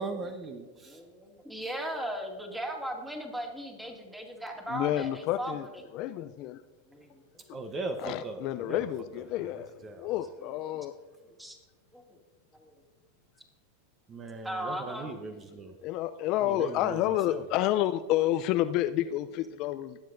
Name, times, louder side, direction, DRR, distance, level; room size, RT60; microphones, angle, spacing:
voice 1, 0.0-1.0 7.5-8.9 9.2-10.2 14.1-15.7 16.4-17.4, right 3 dB, 30° right, 7 dB, 0.9 m, -39 dB
voice 2, 0.9-5.9 6.9-7.4 10.7-10.9 11.2-11.6 11.9-12.2 12.5-12.8 14.4-15.1 15.4-15.7, right 1 dB, 5° right, 2 dB, 2.1 m, -38 dB
voice 3, 4.7-5.7 5.9-6.6 8.0-9.7 10.0-10.9 15.8-20.0, left 13 dB, 50° left, 11 dB, 0.4 m, -29 dB
21.0 x 7.6 x 2.6 m, 1.3 s
hypercardioid pair, 105°, 0 cm